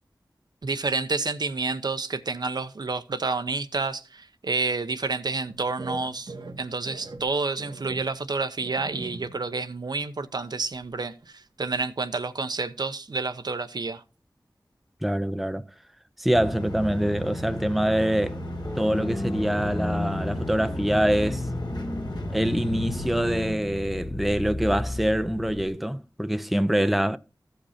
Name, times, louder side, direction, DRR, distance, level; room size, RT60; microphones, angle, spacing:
voice 1, 0.6-14.0, right 3 dB, 65° right, 0.8 m, -29 dB
sound 1, 5.5-9.6 10.0-10.1 10.6-11.3 11.7-11.8 12.2-12.3, right 2 dB, 90° right, 1.2 m, -42 dB
voice 2, 15.0-15.6 16.2-18.4 18.8-21.5 22.3-27.2, equal, ahead, 0.6 m, -25 dB
sound 2, 16.3-23.5, equal, 70° left, 2.2 m, -35 dB
sound 3, 18.6-25.7, left 2 dB, 30° left, 1.0 m, -33 dB
15.0 x 5.3 x 4.2 m
wide cardioid pair, 65°, 8 cm